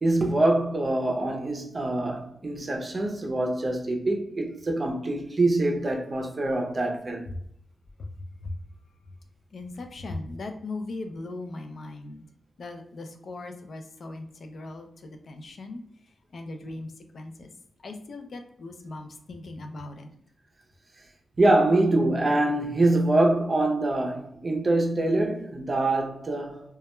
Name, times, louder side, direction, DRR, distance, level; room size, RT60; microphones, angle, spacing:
voice 1, 0.0-7.2 21.4-26.6, right 2 dB, 35° right, 0.5 m, -24 dB
voice 2, 8.0-8.6 9.0-9.1 9.5-12.2 12.6-17.5 17.8-20.1, left 2 dB, 60° left, 0.3 m, -39 dB
2.2 x 2.1 x 2.9 m
wide cardioid pair, 120°, 0 cm